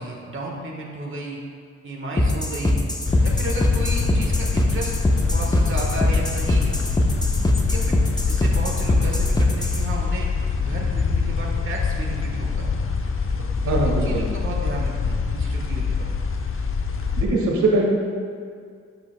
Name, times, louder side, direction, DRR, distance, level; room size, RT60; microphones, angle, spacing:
voice 1, 0.0-1.4 1.8-2.8 3.2-4.9 5.3-6.8 7.6-8.0 8.2-10.3 10.6-12.7 13.6-16.1, right 2 dB, 45° right, -1 dB, 1.4 m, -33 dB
sound 1, 2.2-9.8, left 1 dB, 15° left, 0.9 m, -22 dB
sound 2, 3.0-17.3, left 5 dB, 45° left, 0.8 m, -25 dB
voice 2, 13.6-14.2 17.2-17.8, right 2 dB, 80° right, -2 dB, 1.8 m, -21 dB
12.5 x 6.7 x 2.2 m, 2.2 s
cardioid pair, 65°, 29 cm